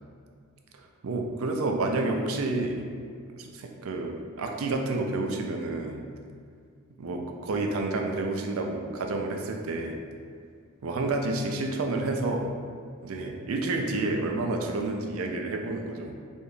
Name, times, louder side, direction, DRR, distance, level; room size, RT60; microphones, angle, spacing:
voice 1, 1.0-2.8 3.3-6.1 7.0-10.0 10.8-12.6 13.0-16.2, right 2 dB, 80° right, 3 dB, 0.4 m, -29 dB
4.0 x 3.4 x 2.3 m, 2.2 s
head